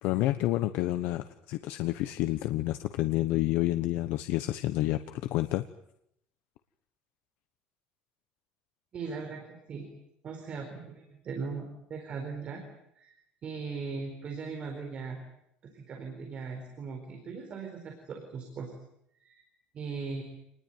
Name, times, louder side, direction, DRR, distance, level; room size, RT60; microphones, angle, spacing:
voice 1, 0.0-5.6, left 16 dB, 65° left, 10 dB, 1.1 m, -29 dB
voice 2, 8.9-9.9 10.2-12.6 13.0-13.1 13.4-15.2 15.6-18.7 19.2-19.4 19.7-20.2, right 5 dB, 30° right, 4 dB, 4.3 m, -39 dB
28.0 x 20.5 x 9.4 m, 0.77 s
cardioid pair, 180°, 4 cm